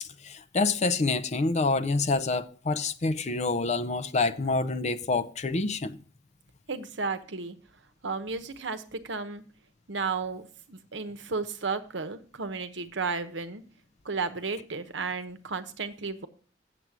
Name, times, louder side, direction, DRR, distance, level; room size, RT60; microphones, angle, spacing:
voice 1, 0.0-6.0, left 3 dB, 40° left, 0.6 m, -27 dB
voice 2, 6.7-7.5 8.0-9.4 9.9-13.6 14.0-16.3, right 4 dB, 70° right, 1.0 m, -33 dB
8.1 x 7.5 x 6.0 m
head